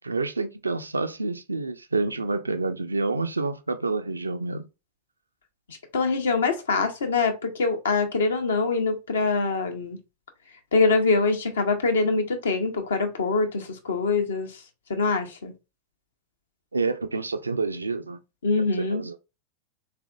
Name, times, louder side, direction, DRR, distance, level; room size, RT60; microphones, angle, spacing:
voice 1, 0.0-4.6 16.7-18.2 18.8-19.2, right 3 dB, 80° right, 0.4 m, -28 dB
voice 2, 5.7-10.0 10.7-14.6 14.9-15.5 18.4-19.0, left 4 dB, 65° left, 0.7 m, -24 dB
3.5 x 3.3 x 2.4 m
figure-of-eight pair, 90°, 0 cm